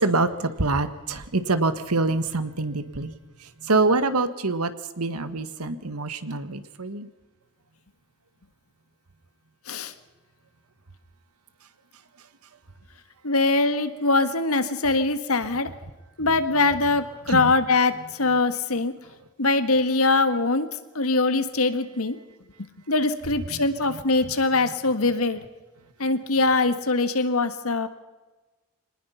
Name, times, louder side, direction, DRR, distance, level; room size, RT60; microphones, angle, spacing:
voice 1, 0.0-3.1 3.6-4.7 5.0-7.1 17.3-17.5, right 3 dB, 85° right, 12 dB, 1.5 m, -25 dB
voice 2, 13.2-15.7 16.2-18.9 19.4-20.7 20.9-22.2 22.9-25.4 26.0-27.9, left 3 dB, 75° left, 10 dB, 1.6 m, -22 dB
25.5 x 19.5 x 5.7 m, 1.2 s
head